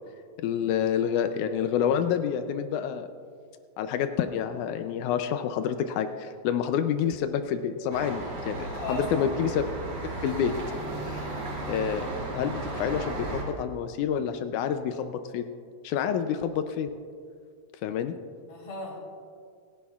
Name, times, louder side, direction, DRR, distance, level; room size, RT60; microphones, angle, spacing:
voice 1, 0.4-3.1 3.8-9.6 10.2-10.5 11.0-11.3 11.7-12.1 12.3-15.4 15.8-16.9 17.8-18.1, left 8 dB, 85° left, 8 dB, 2.1 m, -28 dB
sound 1, 7.9-13.4, right 2 dB, 60° right, 3.9 m, -35 dB
voice 2, 8.8-9.3 18.5-19.0, left 1 dB, 60° left, -3 dB, 5.0 m, -36 dB
28.5 x 11.5 x 2.4 m, 2.1 s
omnidirectional pair, 3.4 m